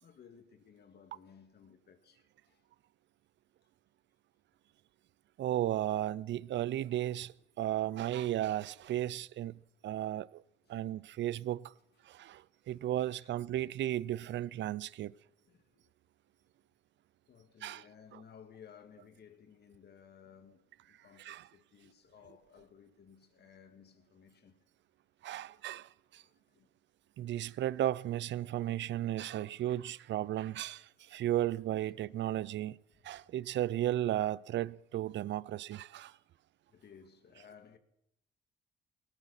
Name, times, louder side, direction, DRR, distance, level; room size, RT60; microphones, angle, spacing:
voice 1, 0.0-2.7 10.6-10.8 13.0-13.4 15.5-15.9 17.3-24.6 26.2-26.7 29.0-29.6 31.0-31.2 36.7-37.8, left 7 dB, 55° left, 2.0 m, -58 dB
voice 2, 5.4-10.4 10.7-11.7 12.1-12.4 12.7-15.1 17.6-17.8 21.2-21.5 25.2-26.2 27.2-32.8 33.0-36.1, right 13 dB, 65° right, 0.5 m, -34 dB
19.0 x 18.0 x 4.2 m
cardioid pair, 90°, 20 cm